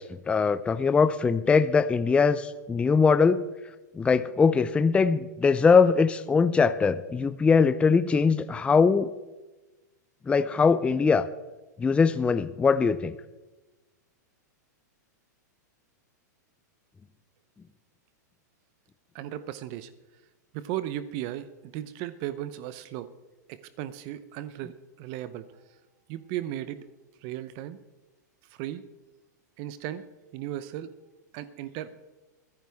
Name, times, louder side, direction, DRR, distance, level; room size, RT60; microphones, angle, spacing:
voice 1, 0.0-3.4 3.9-9.1 10.3-11.2 11.8-13.1, left 5 dB, 10° left, 13 dB, 0.5 m, -22 dB
voice 2, 19.1-19.9 20.5-23.1 23.5-25.4 26.1-26.8 27.2-27.8 28.5-28.8 29.6-30.0 30.3-30.9 31.3-31.9, right 12 dB, 45° right, 14 dB, 0.8 m, -36 dB
23.5 x 10.5 x 3.6 m, 1.1 s
hypercardioid pair, 120°, 10 cm